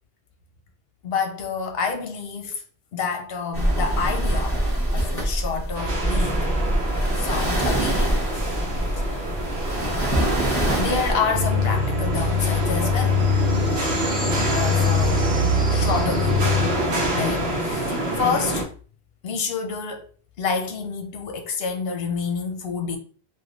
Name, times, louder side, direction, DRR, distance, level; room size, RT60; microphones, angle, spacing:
voice 1, 1.0-2.6 2.9-4.6 4.9-6.4 7.1-8.2 9.0-9.2 10.8-13.2 14.5-15.2 15.7-16.5 17.1-18.7 19.2-20.1 20.4-23.0, left 5 dB, 75° left, 0.9 m, -28 dB
sound 1, 3.5-11.1, right 1 dB, 15° left, 0.8 m, -24 dB
sound 2, 5.7-18.6, right 1 dB, 75° right, 0.9 m, -27 dB
sound 3, 11.3-16.7, left 3 dB, 55° right, 1.1 m, -23 dB
3.2 x 2.5 x 2.4 m
omnidirectional pair, 1.0 m